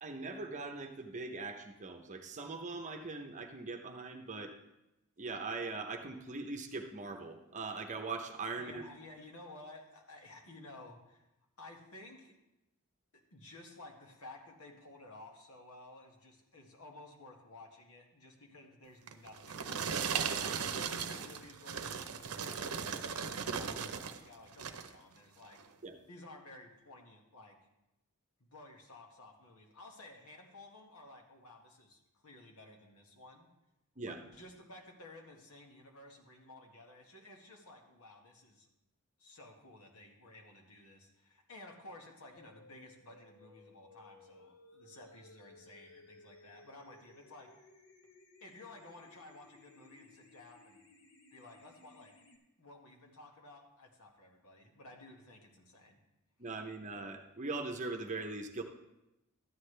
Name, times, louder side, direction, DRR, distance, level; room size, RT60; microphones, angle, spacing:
voice 1, 0.0-4.5 5.2-8.9 25.8-26.0 34.0-34.2 56.4-58.6, right 3 dB, 35° right, 4 dB, 0.8 m, -41 dB
voice 2, 8.6-11.3 11.6-12.3 13.3-25.6 26.1-27.6 28.4-33.5 34.0-38.7 39.2-47.5 48.4-50.8 51.3-52.1 52.6-56.0, left 2 dB, 80° left, 1 dB, 1.8 m, -54 dB
sound 1, 19.1-24.2 24.5-25.0 25.5-25.7, right 6 dB, 80° right, 0.7 m, -37 dB
sound 2, 42.4-52.4, left 2 dB, 65° left, 1.2 m, -61 dB
13.0 x 9.7 x 3.3 m, 0.90 s
head